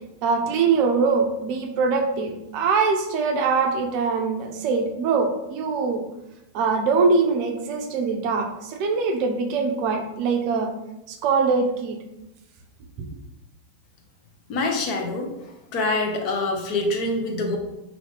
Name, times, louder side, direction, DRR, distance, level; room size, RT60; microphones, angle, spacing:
voice 1, 0.2-6.0 6.5-10.7 11.1-12.0, right 4 dB, 45° right, 3 dB, 0.5 m, -23 dB
voice 2, 14.5-15.3 15.7-17.6, left 2 dB, 40° left, 1 dB, 0.6 m, -25 dB
2.7 x 2.7 x 3.1 m, 0.91 s
figure-of-eight pair, 90°, 0 cm